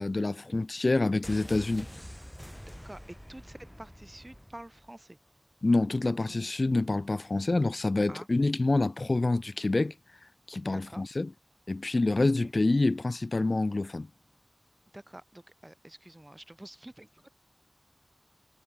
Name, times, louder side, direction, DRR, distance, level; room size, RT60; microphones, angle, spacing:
voice 1, 0.0-1.9 5.6-9.9 10.5-11.3 11.7-14.1, left 2 dB, 85° left, 0.5 m, -27 dB
sound 1, 1.2-5.0 5.3-5.4, equal, 5° left, 1.8 m, -46 dB
voice 2, 2.8-5.2 6.2-6.5 8.1-8.3 10.6-11.1 12.2-12.5 14.9-17.3, right 1 dB, 35° right, 4.7 m, -48 dB
wide cardioid pair, 45°, 0 cm